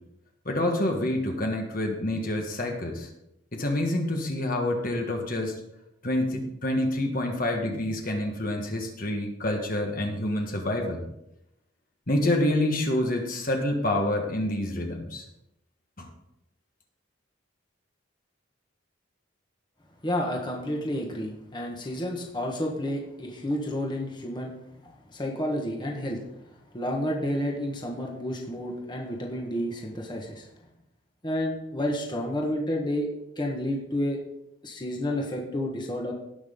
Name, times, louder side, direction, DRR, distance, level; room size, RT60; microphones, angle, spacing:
voice 1, 0.4-3.1 3.5-5.6 6.0-11.0 12.1-15.2 16.0-16.1, left 1 dB, 45° left, 2 dB, 1.5 m, -27 dB
voice 2, 20.0-24.5 25.1-26.2 26.7-30.5 31.2-33.1 33.4-34.2 34.6-36.1, left 1 dB, 20° left, 0 dB, 1.4 m, -30 dB
18.0 x 6.0 x 3.8 m, 0.83 s
head